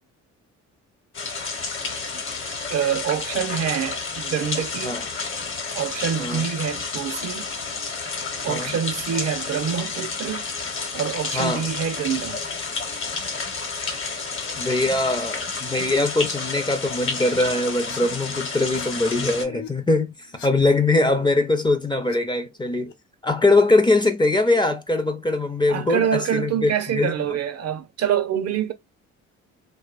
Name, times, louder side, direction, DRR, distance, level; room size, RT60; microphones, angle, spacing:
sound 1, 1.1-19.4, left 4 dB, 45° left, 0.9 m, -30 dB
voice 1, 2.7-5.1 5.7-7.5 8.4-10.4 10.9-12.4 25.7-28.7, right 8 dB, 55° right, 0.6 m, -26 dB
voice 2, 11.3-11.7 14.6-20.1 20.4-22.9 23.2-27.1, left 2 dB, 15° left, 0.5 m, -22 dB
sound 2, 17.7-18.0 18.5-18.9 19.1-19.7 20.1-21.3 21.6-22.2 22.5-22.9 23.9-24.6, left 7 dB, 70° left, 0.9 m, -44 dB
2.7 x 2.1 x 2.3 m
cardioid pair, 90°, 30 cm